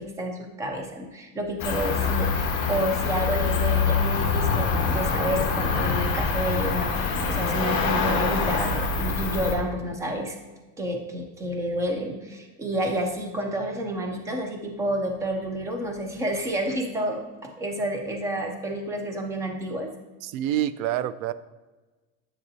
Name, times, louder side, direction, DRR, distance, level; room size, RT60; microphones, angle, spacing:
voice 1, 0.0-10.4 10.8-19.9, right 1 dB, 10° right, 4 dB, 0.4 m, -29 dB
Cricket, 1.6-9.5, left 5 dB, 30° left, 1.2 m, -25 dB
voice 2, 20.2-21.3, right 12 dB, 85° right, 16 dB, 0.6 m, -27 dB
9.5 x 7.2 x 2.7 m, 1.2 s
cardioid pair, 170°, 40 cm